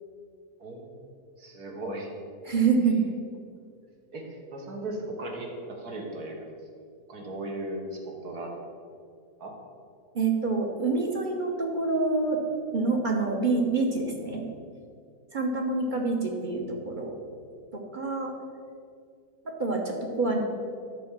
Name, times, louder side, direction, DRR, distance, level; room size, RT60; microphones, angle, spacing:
voice 1, 0.6-1.0 1.4-2.1 4.1-6.4 7.1-8.5 9.4-9.5, right 1 dB, 70° right, 1 dB, 2.0 m, -37 dB
voice 2, 2.4-3.0 10.1-14.4 15.3-17.1 17.9-18.3 19.4-20.4, right 3 dB, 35° right, 1 dB, 1.0 m, -26 dB
10.5 x 4.8 x 7.3 m, 2.2 s
omnidirectional pair, 1.7 m